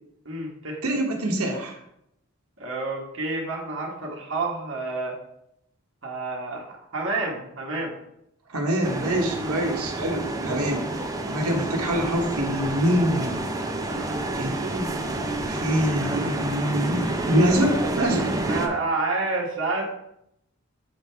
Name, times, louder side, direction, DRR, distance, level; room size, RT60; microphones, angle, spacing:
voice 1, 0.2-0.8 2.6-5.1 6.0-6.6 6.9-7.9 9.3-9.5 13.8-14.2 18.4-19.8, right 3 dB, 60° right, -3 dB, 1.2 m, -29 dB
voice 2, 0.8-1.8 8.5-10.8 11.3-13.4 14.3-15.1 15.5-18.4, equal, 90° right, 1 dB, 1.2 m, -25 dB
sound 1, 8.8-18.7, right 2 dB, 15° right, 0.5 m, -29 dB
7.8 x 3.5 x 4.4 m, 0.78 s
head